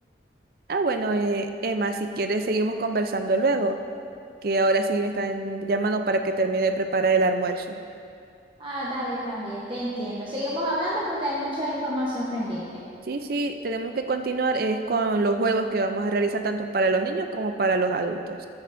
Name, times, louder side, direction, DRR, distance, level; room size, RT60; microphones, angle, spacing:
voice 1, 0.7-3.8 4.4-7.8 13.1-18.5, right 3 dB, 55° right, 6 dB, 0.5 m, -25 dB
voice 2, 8.6-12.8, equal, 30° right, -6 dB, 1.0 m, -29 dB
13.0 x 7.6 x 2.6 m, 2.4 s
head